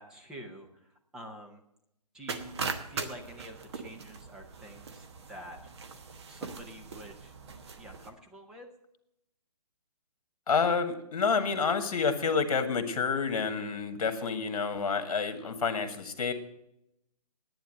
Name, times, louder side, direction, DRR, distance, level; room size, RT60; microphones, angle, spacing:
voice 1, 0.0-1.6 2.1-2.6 2.9-5.6 6.3-7.3 7.8-8.7 13.9-14.0, right 1 dB, 5° right, 2 dB, 0.6 m, -47 dB
sound 1, 2.3-8.1, right 5 dB, 45° right, 1.1 m, -40 dB
voice 2, 10.5-16.3, left 5 dB, 60° left, 7 dB, 1.9 m, -29 dB
10.5 x 9.4 x 7.7 m, 0.82 s
hypercardioid pair, 165°, 20 cm